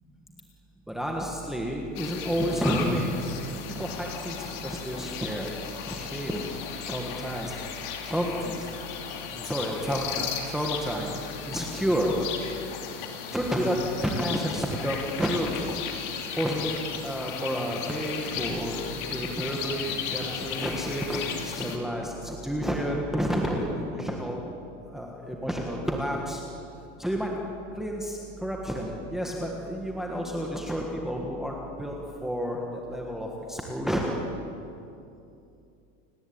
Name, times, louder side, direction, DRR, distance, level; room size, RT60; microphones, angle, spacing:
voice 1, 0.9-3.2 3.8-4.3 4.6-5.5 5.9-6.4 6.8-7.5 8.1-8.6 9.4-11.2 11.5-12.1 13.3-13.8 14.0-15.7 16.4-16.7 17.0-18.8 19.1-24.4 24.9-26.4 27.0-27.3 27.8-32.6 32.9-34.2, equal, ahead, -1 dB, 1.5 m, -30 dB
sound 1, 2.0-21.8, left 6 dB, 40° left, 2.9 m, -35 dB
29.5 x 19.0 x 8.7 m, 2.6 s
supercardioid pair, 180°, 37 cm